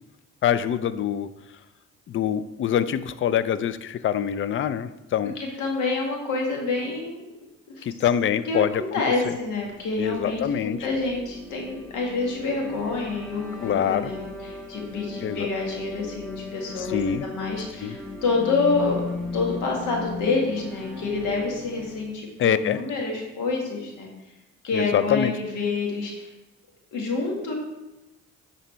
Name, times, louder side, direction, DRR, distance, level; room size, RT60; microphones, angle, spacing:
voice 1, 0.4-1.3 2.1-5.4 7.8-9.3 10.0-10.8 13.6-14.1 15.2-15.5 16.8-17.3 17.8-18.0 22.4-22.8 24.7-25.3, left 9 dB, 45° left, 14 dB, 0.4 m, -25 dB
voice 2, 5.4-7.2 7.8-7.9 8.5-19.0 19.3-24.1 24.6-26.3 26.9-27.5, left 3 dB, 85° left, 0 dB, 1.7 m, -27 dB
sound 1, 9.2-22.2, left 2 dB, ahead, 2.0 m, -38 dB
9.6 x 4.1 x 4.3 m, 1.0 s
cardioid pair, 90°, 30 cm